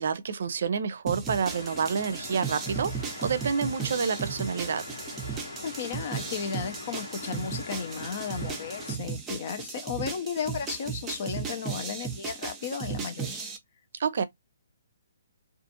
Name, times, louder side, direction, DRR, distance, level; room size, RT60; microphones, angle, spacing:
voice 1, 0.0-4.9 14.0-14.2, right 6 dB, 60° right, 0.5 m, -28 dB
sound 1, 1.1-13.6, right 6 dB, 15° right, 0.6 m, -36 dB
sound 2, 1.5-9.0, left 3 dB, 80° left, 1.2 m, -42 dB
voice 2, 5.6-13.5, left 6 dB, 45° left, 0.6 m, -34 dB
2.5 x 2.4 x 2.8 m
hypercardioid pair, 150°, 0 cm